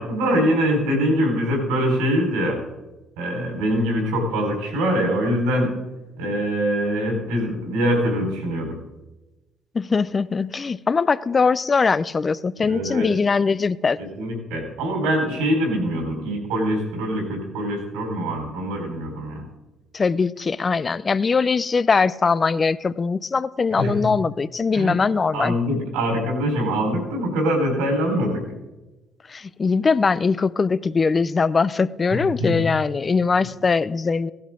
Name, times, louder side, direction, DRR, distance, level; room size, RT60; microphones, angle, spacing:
voice 1, 0.0-2.6 3.2-5.7 6.2-8.7 12.6-13.1 14.0-19.4 23.7-23.9 24.7-25.0 25.3-28.4 32.1-32.6, equal, 85° right, 1 dB, 4.3 m, -23 dB
voice 2, 9.7-14.0 19.9-25.6 29.3-34.3, left 4 dB, 35° left, 18 dB, 0.5 m, -21 dB
16.5 x 11.5 x 3.7 m, 1.1 s
hypercardioid pair, 60°, 0 cm